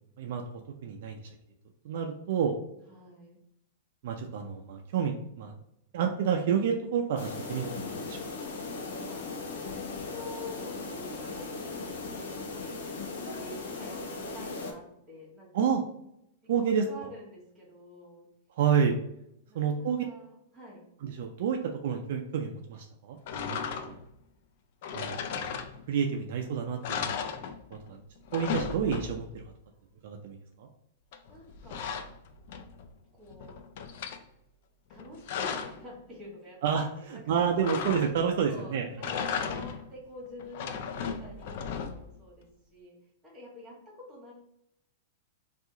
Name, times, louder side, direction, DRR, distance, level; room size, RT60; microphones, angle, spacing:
voice 1, 0.2-1.3 1.8-2.5 4.0-5.5 5.9-8.3 15.5-15.8 16.5-16.8 18.6-18.9 19.5-20.0 21.0-24.0 24.9-25.5 25.9-27.2 27.7-28.0 28.3-29.4 30.0-30.7 36.6-38.9, right 7 dB, 60° right, 3 dB, 0.4 m, -29 dB
voice 2, 2.9-3.4 9.0-12.7 13.1-15.7 16.4-18.3 19.5-20.9 31.3-31.9 33.1-33.6 34.9-37.2 37.6-37.7 38.5-44.3, left 1 dB, 10° right, -4 dB, 1.4 m, -48 dB
sound 1, 7.2-14.7, left 3 dB, 80° left, 0.7 m, -38 dB
sound 2, 23.3-24.1 24.8-26.1 26.4-26.5 26.8-27.9 28.2-29.4 31.1-32.9 33.3-34.2 34.9-35.9 37.6-38.4 38.9-39.9 40.4-42.2, left 6 dB, 55° left, 0.3 m, -36 dB
2.7 x 2.4 x 3.6 m, 0.79 s
supercardioid pair, 155°, 0 cm